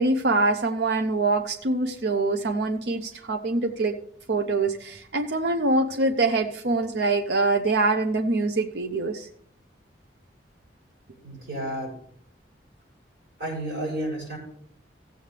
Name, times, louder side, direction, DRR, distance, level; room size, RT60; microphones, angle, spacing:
voice 1, 0.0-4.0 4.3-9.3, right 2 dB, 65° right, 4 dB, 0.7 m, -24 dB
voice 2, 11.2-12.0 13.4-14.4, right 1 dB, 50° right, -2 dB, 5.6 m, -31 dB
16.0 x 7.7 x 3.4 m, 0.63 s
head